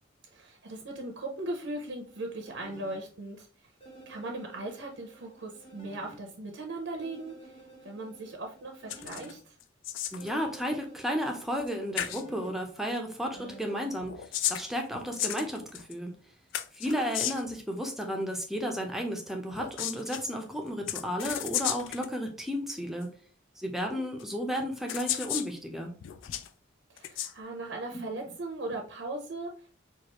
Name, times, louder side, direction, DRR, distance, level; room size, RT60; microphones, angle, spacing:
voice 1, 0.3-3.5 4.1-9.6 16.8-17.2 23.9-24.0 26.9-29.7, right 2 dB, 75° right, 3 dB, 0.7 m, -39 dB
sound 1, 2.1-3.0 3.8-6.2 7.0-9.4 10.2-12.6 13.3-13.9, right 1 dB, 30° left, 1.0 m, -51 dB
sound 2, 8.9-9.3 9.6-10.3 11.6-11.7 12.0-12.2 14.0-15.9 16.5-17.6 19.5-20.2 20.9-22.1 23.0-23.1 24.2-24.3 24.9-25.5 26.0-26.5 27.0-27.3, left 11 dB, 80° left, 0.3 m, -34 dB
voice 2, 10.1-16.1 16.7-23.1 23.6-25.9 27.9-28.1, equal, ahead, 2 dB, 0.6 m, -33 dB
4.6 x 2.4 x 2.9 m, 0.41 s
head